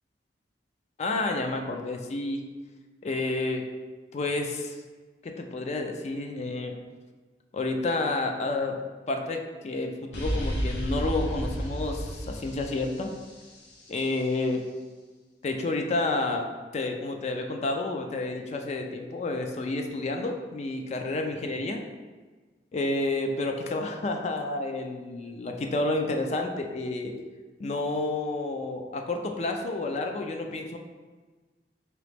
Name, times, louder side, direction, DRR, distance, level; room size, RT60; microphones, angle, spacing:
voice 1, 1.0-2.4 3.0-3.6 4.1-4.8 5.2-6.8 7.5-8.8 9.1-13.1 13.9-14.6 15.4-16.5 16.7-21.8 22.7-27.1 27.6-30.8, left 2 dB, 35° left, 4 dB, 0.3 m, -30 dB
sound 1, 10.1-13.9, equal, 70° left, 0.7 m, -32 dB
3.8 x 3.0 x 3.3 m, 1.3 s
head